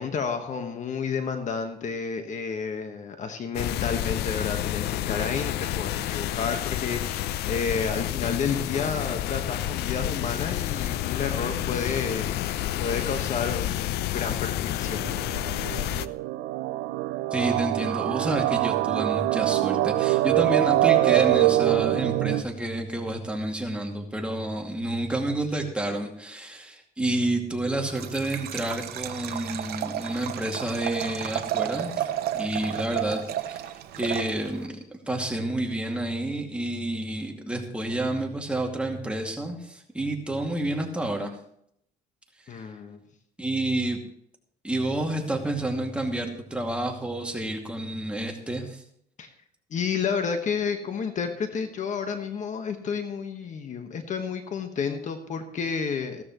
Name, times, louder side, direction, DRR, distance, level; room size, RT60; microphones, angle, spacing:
voice 1, 0.0-12.3 12.8-15.0 42.5-43.0 49.2-49.3 49.7-56.2, left 6 dB, 45° left, 7 dB, 1.4 m, -31 dB
sound 1, 3.5-16.1, left 13 dB, 75° left, 0.5 m, -29 dB
sound 2, 14.8-22.4, right 16 dB, 85° right, 0.6 m, -24 dB
voice 2, 17.3-32.1 32.3-34.8 35.1-41.3 43.4-44.0 44.6-48.8, right 1 dB, 5° right, 1 dB, 2.4 m, -29 dB
Liquid, 27.8-34.7, right 11 dB, 65° right, 1.0 m, -32 dB
15.5 x 13.5 x 3.1 m, 0.71 s
cardioid pair, 110°, 17 cm